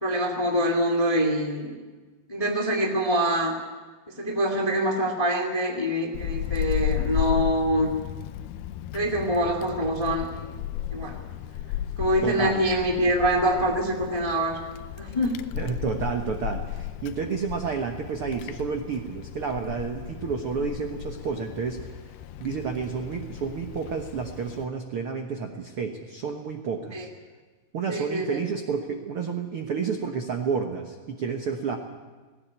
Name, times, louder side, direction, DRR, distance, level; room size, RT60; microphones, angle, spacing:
voice 1, 0.0-1.8 2.3-3.5 4.1-7.9 8.9-10.4 10.9-11.2 12.0-14.6 15.0-15.4 26.9-27.1 27.9-28.4, equal, 25° left, 2 dB, 0.7 m, -25 dB
Wind, 6.1-24.7, left 12 dB, 80° left, 2.7 m, -34 dB
voice 2, 12.2-12.6 15.5-22.0 22.4-27.1 27.7-31.8, right 5 dB, 85° right, 4 dB, 1.2 m, -30 dB
18.0 x 18.0 x 9.2 m, 1.3 s
omnidirectional pair, 4.6 m